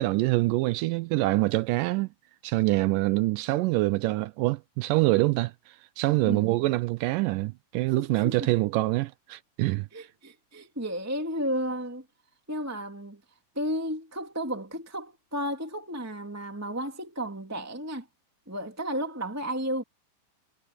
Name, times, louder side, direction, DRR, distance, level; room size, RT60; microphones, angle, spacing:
voice 1, 0.0-2.1 2.4-9.9, right 20 dB, 80° right, 2.1 m, -25 dB
voice 2, 6.2-6.6 7.9-8.4 9.9-12.0 12.5-13.2 13.6-18.1 18.5-19.8, equal, 5° right, 1.9 m, -33 dB
omnidirectional pair, 4.0 m